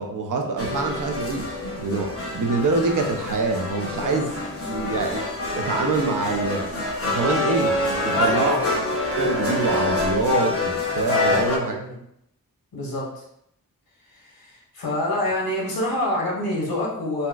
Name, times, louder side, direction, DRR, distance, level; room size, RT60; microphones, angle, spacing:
voice 1, 0.0-4.3 4.7-5.3 5.5-6.7 7.1-8.6 9.2-11.7, right 3 dB, 65° right, 2 dB, 0.6 m, -25 dB
sound 1, 0.6-11.6, left 2 dB, 40° left, 0.7 m, -26 dB
voice 2, 8.1-8.9 11.2-12.0 12.7-13.2 14.1-17.3, left 1 dB, 85° left, -3 dB, 1.0 m, -27 dB
4.1 x 2.2 x 2.3 m, 0.74 s
wide cardioid pair, 110°, 35 cm